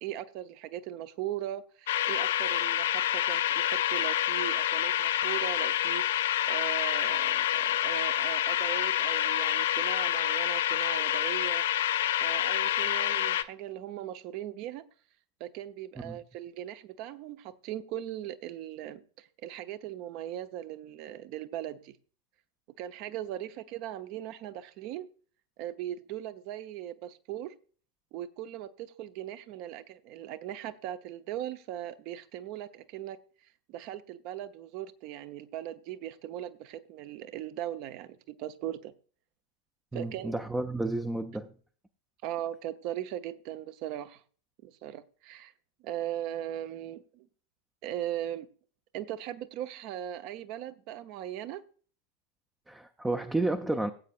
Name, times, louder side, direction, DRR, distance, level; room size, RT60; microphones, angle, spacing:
voice 1, 0.0-11.9 12.2-14.8 15.4-22.0 22.8-25.1 25.6-27.5 28.1-33.2 33.7-38.9 39.9-40.3 42.2-44.2 44.6-45.5 45.8-47.3 47.8-48.5 48.9-51.6, right 12 dB, 45° right, 0.8 m, -39 dB
sound 1, 1.9-13.4, left 12 dB, 60° left, 0.5 m, -28 dB
voice 2, 39.9-41.5 52.7-53.9, right 2 dB, 5° right, 0.6 m, -31 dB
18.0 x 8.3 x 2.5 m
figure-of-eight pair, 90°, 0 cm